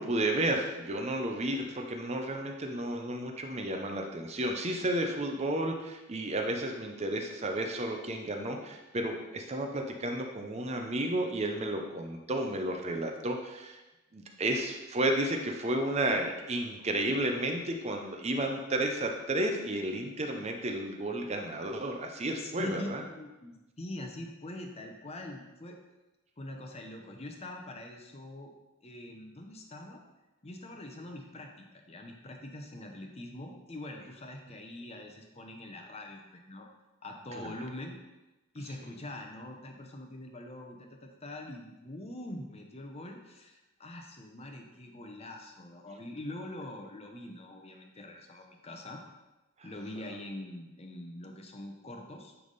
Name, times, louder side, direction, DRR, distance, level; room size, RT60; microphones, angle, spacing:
voice 1, 0.0-13.8 14.1-23.0 37.3-37.5, right 1 dB, 30° right, 3 dB, 0.7 m, -32 dB
voice 2, 22.4-25.8 26.4-28.5 28.8-30.0 30.4-36.7 37.0-38.0 38.5-49.0 49.6-52.3, left 1 dB, 30° left, 3 dB, 0.8 m, -43 dB
9.7 x 3.5 x 4.1 m, 1.0 s
head